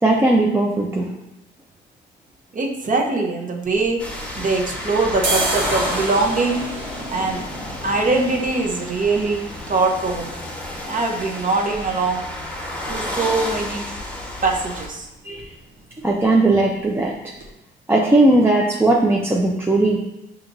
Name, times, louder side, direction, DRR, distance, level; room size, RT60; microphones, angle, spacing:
voice 1, 0.0-1.1 15.2-15.4 16.0-17.1 17.9-20.0, right 2 dB, 10° right, -2 dB, 0.4 m, -17 dB
voice 2, 2.5-4.0 4.4-6.6 7.1-7.4 7.8-10.3 10.9-12.2 12.9-13.9 14.4-15.1, right 3 dB, 40° right, 2 dB, 0.8 m, -22 dB
sound 1, 3.7-4.7 5.1-12.8 13.1-13.2 13.4-14.0 14.3-14.5 14.8-15.0 15.3-16.0 16.4-16.5 17.0-17.1 17.4-17.5, right 2 dB, 70° right, 0.9 m, -32 dB
sound 2, 4.0-14.9, left 1 dB, 5° left, 1.2 m, -31 dB
5.7 x 2.9 x 2.6 m, 0.89 s
cardioid pair, 90°, 20 cm